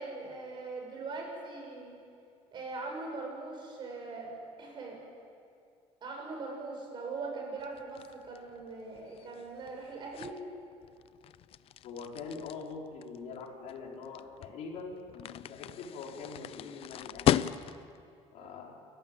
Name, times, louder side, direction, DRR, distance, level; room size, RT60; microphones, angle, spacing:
voice 1, 0.0-1.9 2.5-4.3 4.6-5.0 6.0-10.4 18.4-18.6, right 3 dB, 40° right, 1 dB, 6.8 m, -41 dB
sound 1, 7.6-18.0, left 11 dB, 50° left, 0.6 m, -36 dB
voice 2, 11.8-17.3 18.3-18.8, left 4 dB, 65° left, -1 dB, 4.4 m, -43 dB
29.5 x 15.0 x 9.0 m, 2.3 s
cardioid pair, 145°, 12 cm